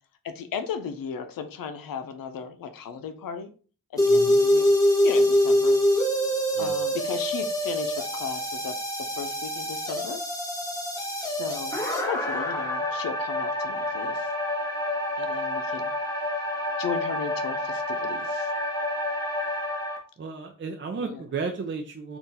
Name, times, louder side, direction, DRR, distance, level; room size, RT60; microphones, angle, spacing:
voice 1, 0.2-3.5 3.9-4.7 5.0-5.8 6.6-8.7 9.2-10.2 11.3-11.8 12.0-14.3 15.2-15.9 16.8-18.5 20.9-21.2, left 7 dB, 90° left, 7 dB, 0.6 m, -35 dB
sound 1, 4.0-20.0, left 1 dB, 10° left, 1.1 m, -26 dB
voice 2, 4.1-4.4 6.6-6.7 20.2-22.2, right 4 dB, 35° right, 3 dB, 0.5 m, -33 dB
3.8 x 2.4 x 4.0 m, 0.39 s
wide cardioid pair, 95°, 33 cm